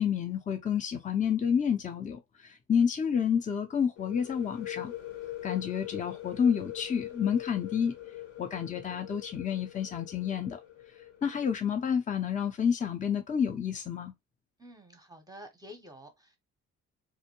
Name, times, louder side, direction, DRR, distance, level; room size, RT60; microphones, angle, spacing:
voice 1, 0.0-4.9 5.4-8.0 8.4-10.6 11.2-14.1, left 7 dB, 25° left, 0.5 m, -29 dB
sound 1, 4.0-11.6, left 14 dB, 70° left, 1.0 m, -43 dB
voice 2, 14.6-16.4, equal, 15° right, 0.7 m, -49 dB
2.6 x 2.1 x 2.9 m
cardioid pair, 90°, 30 cm